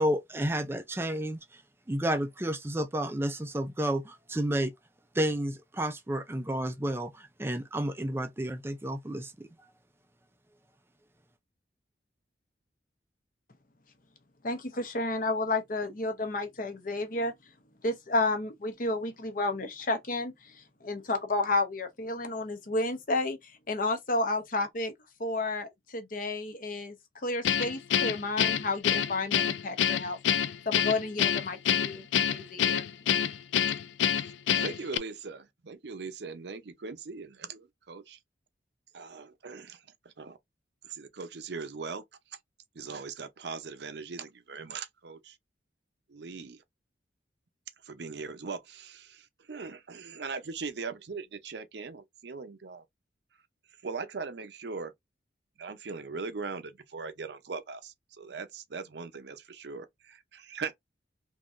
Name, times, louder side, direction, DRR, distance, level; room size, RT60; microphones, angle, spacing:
voice 1, 0.0-1.4 1.9-4.7 5.1-9.5, right 1 dB, 15° right, 0.4 m, -31 dB
voice 2, 14.4-17.3 17.8-24.9 25.2-26.9 27.2-30.2 30.7-32.9, left 2 dB, 50° left, 0.8 m, -31 dB
Guitar, 27.4-35.0, left 9 dB, 85° left, 0.4 m, -27 dB
voice 3, 34.6-38.2 38.9-40.4 40.8-42.0 42.7-45.4 46.1-46.6 47.8-52.8 53.8-54.9 55.6-60.8, right 4 dB, 65° right, 0.6 m, -40 dB
3.6 x 2.8 x 2.5 m
head